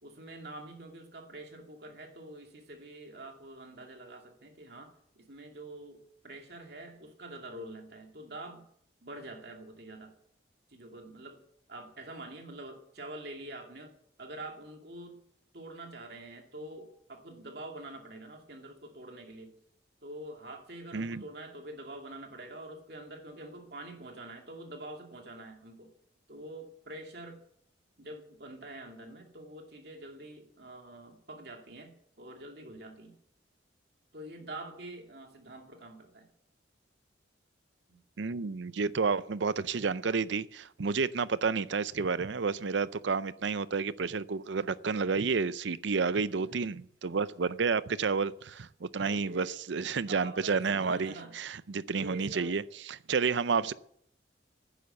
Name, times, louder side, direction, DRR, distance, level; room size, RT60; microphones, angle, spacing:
voice 1, 0.0-8.7 9.0-10.1 10.7-11.4 11.7-13.9 14.2-15.2 15.5-19.6 20.0-25.9 26.3-27.4 28.0-33.1 34.1-36.3 37.9-38.0 46.1-46.8 49.1-49.6 50.1-51.3 51.9-52.7 53.5-53.7, right 1 dB, 55° right, 2.6 m, -46 dB
voice 2, 20.9-21.2 38.2-53.7, right 5 dB, 70° right, 0.6 m, -30 dB
11.5 x 10.0 x 7.9 m
head